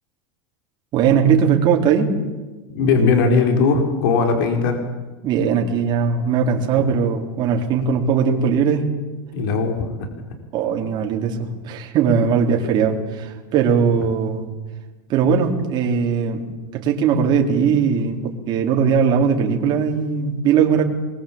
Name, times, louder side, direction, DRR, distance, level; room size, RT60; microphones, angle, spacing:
voice 1, 0.9-2.1 5.2-8.9 10.5-14.5 15.1-16.4 16.7-20.8, right 6 dB, 35° right, 1 dB, 3.9 m, -19 dB
voice 2, 2.7-4.8 6.8-6.9 9.3-10.1, left 4 dB, 65° left, 5 dB, 4.6 m, -19 dB
25.0 x 22.0 x 8.7 m, 1.2 s
supercardioid pair, 150°, 12 cm